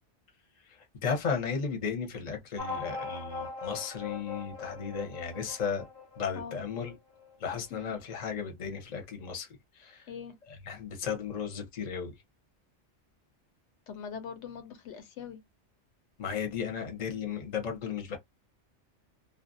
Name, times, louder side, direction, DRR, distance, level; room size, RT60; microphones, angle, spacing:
voice 1, 1.0-5.8 6.2-6.9 7.4-9.5 9.8-10.1 10.5-12.1 16.2-18.2, left 6 dB, 40° left, 0.8 m, -34 dB
sound 1, 2.6-7.5, left 4 dB, 20° right, 0.7 m, -41 dB
voice 2, 13.9-15.4, left 7 dB, 75° left, 0.9 m, -42 dB
2.4 x 2.1 x 2.5 m
omnidirectional pair, 1.2 m